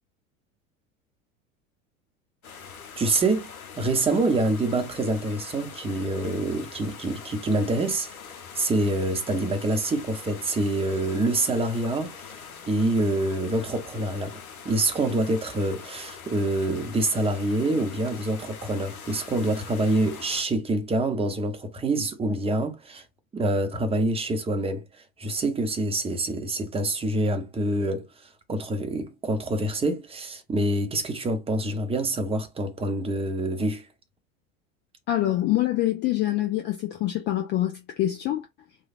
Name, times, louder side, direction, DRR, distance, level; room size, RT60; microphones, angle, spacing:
sound 1, 2.4-20.4, left 6 dB, 85° left, 0.8 m, -43 dB
voice 1, 3.0-3.5 3.8-8.1 8.6-12.3 12.7-23.0 23.3-33.9, right 2 dB, 15° right, 0.7 m, -26 dB
voice 2, 35.1-38.5, left 14 dB, 25° left, 0.4 m, -25 dB
3.2 x 2.3 x 2.4 m
figure-of-eight pair, 80°, 42 cm